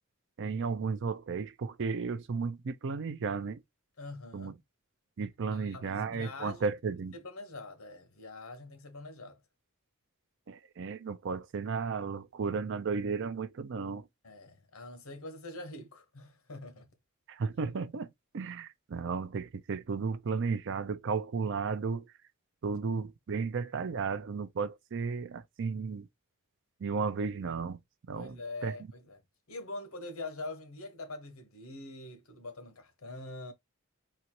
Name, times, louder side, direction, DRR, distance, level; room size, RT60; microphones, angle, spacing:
voice 1, 0.4-3.6 4.3-4.5 5.2-7.1 10.5-14.1 17.3-22.1 22.6-26.1 26.8-27.8 28.1-28.7, right 5 dB, 55° right, 0.5 m, -34 dB
voice 2, 4.0-4.6 5.5-6.7 7.1-9.4 14.2-16.9 28.1-29.2 29.5-33.5, left 2 dB, 65° left, 1.1 m, -44 dB
4.0 x 2.4 x 2.9 m
head